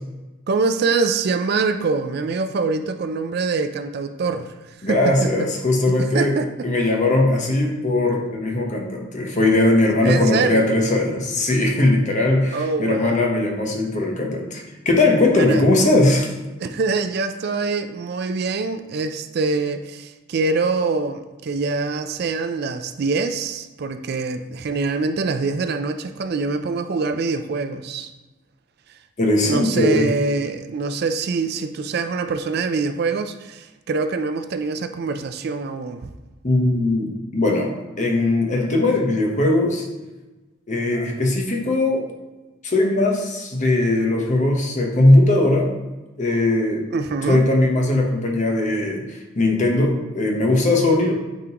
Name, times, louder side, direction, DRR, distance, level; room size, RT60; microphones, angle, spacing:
voice 1, 0.5-5.5 6.0-6.7 10.0-10.7 12.5-13.3 15.3-15.6 16.6-28.1 28.9-29.0 29.4-36.1 46.9-47.4, right 4 dB, 50° right, 9 dB, 0.4 m, -24 dB
voice 2, 4.8-6.3 6.6-16.3 29.2-30.1 36.4-37.7 38.0-39.9 40.7-42.0 42.6-45.7 46.2-46.8 47.3-51.1, left 2 dB, 40° left, 1 dB, 0.9 m, -19 dB
9.2 x 3.7 x 2.9 m, 1.1 s
head